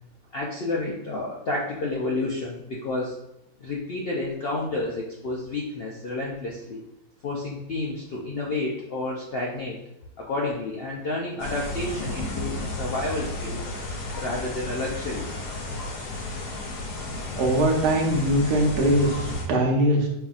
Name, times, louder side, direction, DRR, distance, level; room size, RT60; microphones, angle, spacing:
voice 1, 0.3-3.2 3.6-6.8 7.2-9.8 10.2-13.6 14.1-15.3, left 2 dB, 70° left, -3 dB, 0.5 m, -30 dB
sound 1, 11.4-19.4, left 2 dB, 90° left, 1.4 m, -33 dB
voice 2, 17.4-20.1, right 1 dB, 85° right, 0 dB, 1.4 m, -21 dB
5.3 x 2.6 x 2.4 m, 0.86 s
omnidirectional pair, 1.6 m